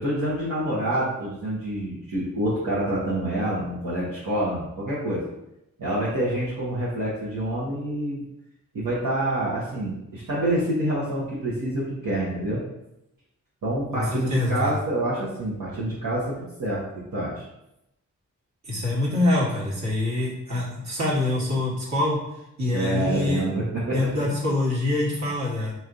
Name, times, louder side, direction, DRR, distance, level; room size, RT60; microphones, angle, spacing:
voice 1, 0.0-5.2 5.8-8.2 8.7-12.6 13.6-17.4 22.7-24.1, right 1 dB, 75° right, -8 dB, 1.1 m, -27 dB
voice 2, 13.9-14.7 18.7-22.2 22.6-23.4 23.9-25.7, left 2 dB, 55° right, -5 dB, 1.5 m, -25 dB
4.3 x 3.1 x 2.5 m, 0.85 s
cardioid pair, 45°, 33 cm